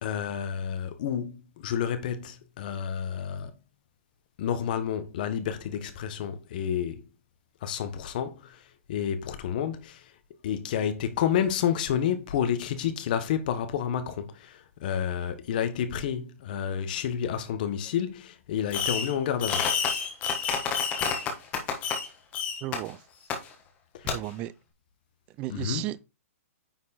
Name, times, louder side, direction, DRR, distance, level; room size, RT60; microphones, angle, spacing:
voice 1, 0.0-3.5 4.4-7.1 7.6-8.6 8.9-10.1 10.4-19.7 23.9-24.2 25.5-25.9, left 9 dB, 35° left, 1.2 m, -30 dB
Fireworks, 18.7-19.1 19.4-22.1 22.3-22.8 23.3-23.4 24.1-24.2, left 6 dB, 15° left, 1.3 m, -28 dB
voice 2, 22.6-23.0 24.0-24.5 25.4-26.0, right 15 dB, 15° right, 0.3 m, -34 dB
9.4 x 4.6 x 4.3 m
hypercardioid pair, 170°, 8 cm